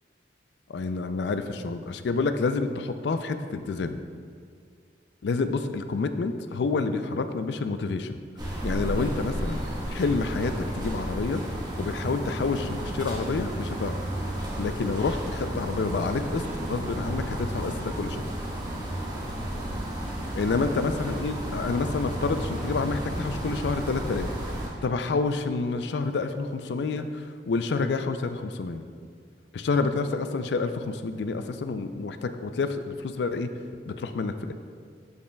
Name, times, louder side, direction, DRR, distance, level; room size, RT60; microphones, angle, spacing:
voice 1, 0.7-4.0 5.2-8.2 8.6-11.4 11.8-14.0 14.6-18.2 20.4-28.8 29.5-33.5 33.9-34.5, left 4 dB, 70° left, 9 dB, 0.4 m, -28 dB
sound 1, 8.4-24.7, right 1 dB, 25° right, 1.2 m, -32 dB
11.5 x 5.4 x 2.3 m, 2.1 s
head